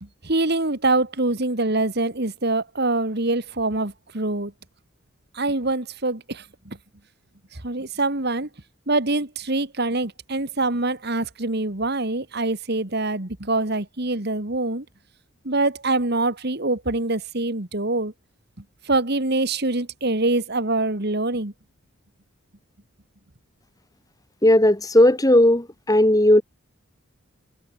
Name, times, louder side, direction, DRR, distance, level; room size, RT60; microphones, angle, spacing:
voice 1, 0.0-4.5 5.3-6.8 7.5-8.5 8.9-14.9 15.4-18.1 18.8-21.5, right 2 dB, 50° right, 2.2 m, -24 dB
voice 2, 24.4-26.4, left 1 dB, 15° left, 1.9 m, -16 dB
head